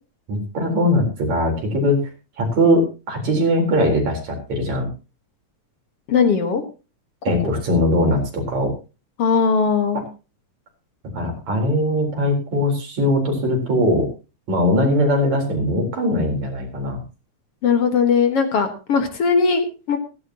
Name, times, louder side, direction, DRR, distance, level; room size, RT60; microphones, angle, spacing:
voice 1, 0.3-2.0 2.4-4.9 7.3-8.7 11.2-14.1 14.5-17.0, left 1 dB, 70° right, 2 dB, 5.4 m, -20 dB
voice 2, 6.1-6.6 9.2-10.0 17.6-20.0, left 5 dB, 55° left, 6 dB, 2.4 m, -19 dB
16.0 x 15.5 x 2.9 m, 0.32 s
omnidirectional pair, 3.3 m